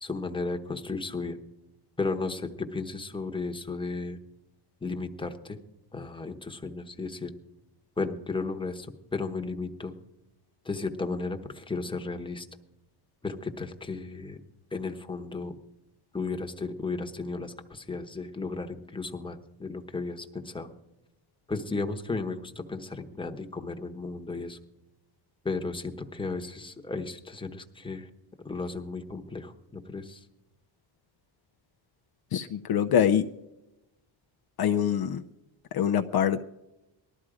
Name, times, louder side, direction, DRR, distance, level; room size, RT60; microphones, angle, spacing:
voice 1, 0.0-1.4 2.0-4.2 4.8-5.6 5.9-7.3 8.0-9.9 10.6-12.5 13.2-14.4 14.7-15.5 16.1-20.7 21.5-24.6 25.4-28.1 28.4-30.2, left 3 dB, 10° left, 5 dB, 1.1 m, -34 dB
voice 2, 32.3-33.3 34.6-35.2 35.7-36.4, left 9 dB, 55° left, 7 dB, 0.6 m, -24 dB
19.5 x 12.5 x 5.0 m, 0.95 s
cardioid pair, 145°, 46 cm